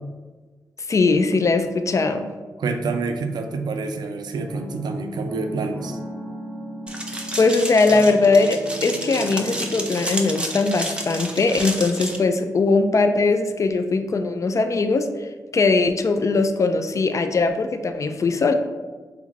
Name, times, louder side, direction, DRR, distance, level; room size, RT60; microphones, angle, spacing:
voice 1, 0.9-2.3 7.4-18.5, left 3 dB, 45° left, 7 dB, 0.4 m, -20 dB
voice 2, 2.6-6.0, right 3 dB, 70° right, 6 dB, 0.4 m, -27 dB
sound 1, 4.5-9.8, right 1 dB, 15° left, 1.1 m, -36 dB
sound 2, 6.9-12.2, right 1 dB, 15° right, 0.6 m, -31 dB
3.5 x 2.4 x 3.1 m, 1.3 s
supercardioid pair, 40°, 7 cm